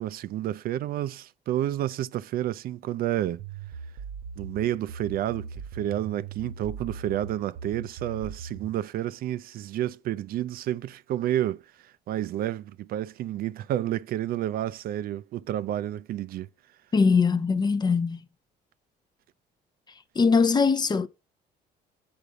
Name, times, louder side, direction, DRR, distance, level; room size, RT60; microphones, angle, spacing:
voice 1, 0.0-3.4 4.4-16.5, right 12 dB, 60° right, 0.4 m, -30 dB
sound 1, 3.4-8.8, right 6 dB, 90° right, 1.0 m, -40 dB
voice 2, 16.9-18.2 20.2-21.1, left 5 dB, 25° left, 0.6 m, -21 dB
6.9 x 5.1 x 4.7 m
cardioid pair, 110°, 17 cm